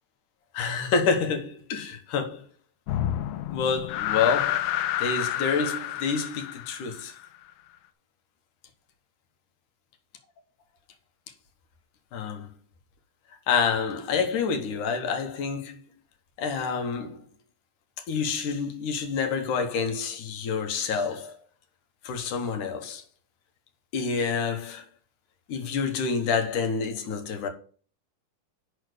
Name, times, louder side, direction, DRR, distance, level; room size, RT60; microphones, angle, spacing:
voice 1, 0.5-2.5 3.5-4.7 5.0-7.1 12.1-12.5 13.5-15.8 16.4-17.2 18.1-21.3 22.0-23.0 23.9-24.8 25.5-27.5, left 5 dB, 70° left, 2.1 m, -28 dB
sound 1, 2.9-7.3, left 12 dB, 90° left, 2.6 m, -29 dB
6.8 x 5.5 x 6.4 m
omnidirectional pair, 4.5 m